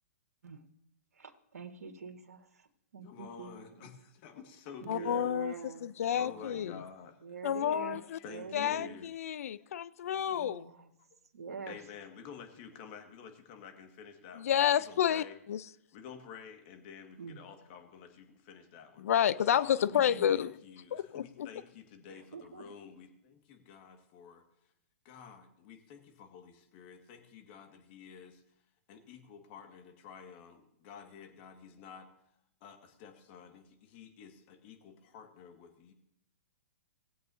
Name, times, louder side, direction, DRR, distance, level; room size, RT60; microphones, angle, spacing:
voice 1, 1.2-2.7 2.9-3.6 4.8-6.7 7.2-8.0 8.3-9.0 10.3-10.9 11.3-11.8 17.2-17.4 19.9-20.4 22.1-22.6, right 5 dB, 85° right, 5 dB, 1.6 m, -45 dB
voice 2, 3.0-5.7 6.2-7.2 8.1-9.1 11.7-14.6 14.9-15.4 15.9-19.0 19.6-24.4 25.0-28.4 28.9-32.1 32.6-35.9, left 7 dB, 45° left, 5 dB, 1.9 m, -50 dB
voice 3, 4.9-6.8 7.4-8.2 8.5-10.7 14.4-15.6 19.0-20.5 20.9-21.5, left 10 dB, 70° left, 17 dB, 0.5 m, -30 dB
19.5 x 8.3 x 2.8 m, 0.79 s
hypercardioid pair, 125°, 8 cm